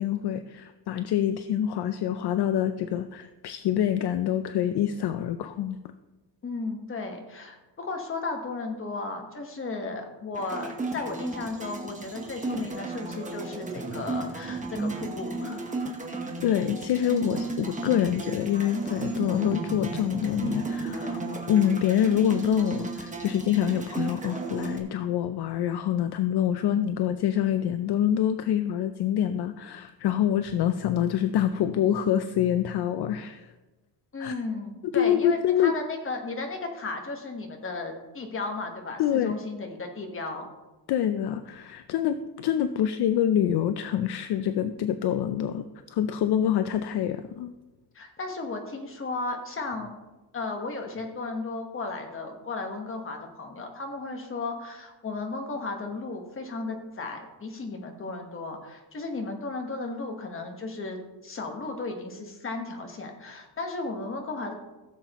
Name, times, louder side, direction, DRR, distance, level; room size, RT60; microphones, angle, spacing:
voice 1, 0.0-5.8 16.4-21.2 21.5-33.5 34.2-34.3 34.9-35.7 39.0-39.4 40.9-45.6 45.9-47.5, left 10 dB, 60° left, 10 dB, 0.5 m, -26 dB
voice 2, 6.4-15.7 34.1-40.5 47.9-49.9 50.3-64.5, left 3 dB, 30° left, 3 dB, 1.3 m, -35 dB
sound 1, 10.3-24.8, right 3 dB, 15° right, 1.0 m, -34 dB
15.5 x 7.4 x 3.0 m, 1.1 s
cardioid pair, 170°, 46 cm